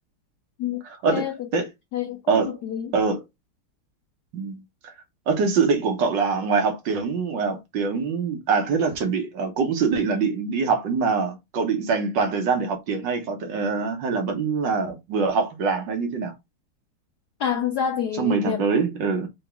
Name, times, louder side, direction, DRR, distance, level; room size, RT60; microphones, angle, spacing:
voice 1, 1.1-1.5 1.9-2.9 17.4-18.6, left 8 dB, 80° left, 0.9 m, -28 dB
voice 2, 2.3-2.6 2.9-3.2 4.3-4.9 5.3-16.3 18.2-19.3, right 5 dB, 65° right, 1.5 m, -24 dB
4.0 x 3.4 x 3.4 m
omnidirectional pair, 2.3 m